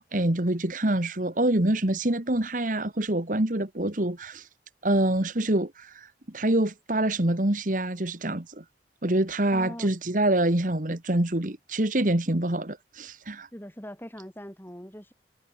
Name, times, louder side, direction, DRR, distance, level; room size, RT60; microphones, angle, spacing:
voice 1, 0.0-4.5 4.8-8.6 9.0-13.5, right 1 dB, 50° right, 1.8 m, -26 dB
voice 2, 9.5-9.9 13.5-15.1, equal, 10° left, 7.3 m, -41 dB
head